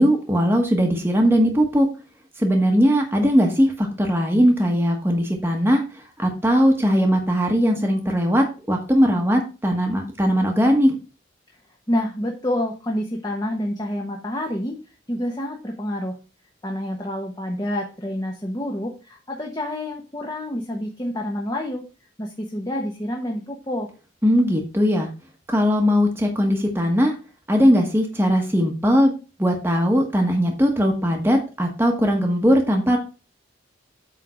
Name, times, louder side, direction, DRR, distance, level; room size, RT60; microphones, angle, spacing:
voice 1, 0.0-1.9 2.4-5.8 6.2-11.0 24.2-25.1 25.5-27.1 27.5-29.1 29.4-33.0, equal, 10° right, 1 dB, 1.2 m, -19 dB
voice 2, 11.9-14.8 15.1-16.2 16.6-21.8 22.2-23.9, left 1 dB, 20° left, 0 dB, 1.1 m, -28 dB
8.3 x 3.8 x 6.3 m, 0.33 s
head